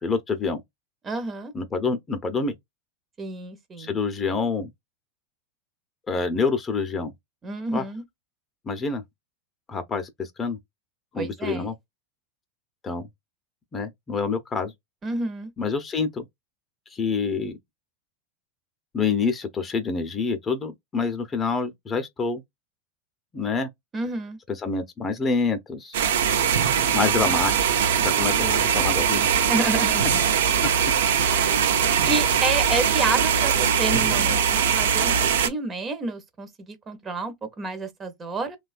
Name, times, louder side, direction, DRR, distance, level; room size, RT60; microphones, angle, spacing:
voice 1, 0.0-0.6 1.5-2.5 3.8-4.7 6.1-7.1 7.7-7.8 8.7-9.0 9.7-10.6 11.1-11.7 12.8-13.1 13.7-14.7 15.6-16.2 16.9-17.6 18.9-22.4 23.3-23.7 24.6-26.0 26.9-27.5 28.0-29.4 30.6-30.7, left 4 dB, 25° left, 0.7 m, -27 dB
voice 2, 1.0-1.5 3.2-4.0 7.4-8.0 11.2-11.7 15.0-15.5 23.9-24.4 28.3-28.8 29.5-30.2 31.2-31.4 32.0-38.6, right 3 dB, 25° right, 0.8 m, -30 dB
sound 1, 25.9-35.5, right 8 dB, 75° right, 0.5 m, -21 dB
3.0 x 2.3 x 2.4 m
hypercardioid pair, 95°, 0 cm